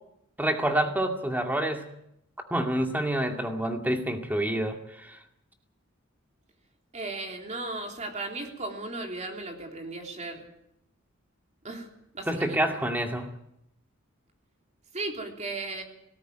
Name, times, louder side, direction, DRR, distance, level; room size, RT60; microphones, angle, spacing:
voice 1, 0.4-1.9 2.5-5.2 12.3-13.3, right 1 dB, 10° right, 4 dB, 2.3 m, -27 dB
voice 2, 6.9-10.5 11.6-11.9 12.1-12.8 14.9-15.8, right 2 dB, 35° right, 2 dB, 3.3 m, -36 dB
18.5 x 17.5 x 9.2 m, 0.78 s
head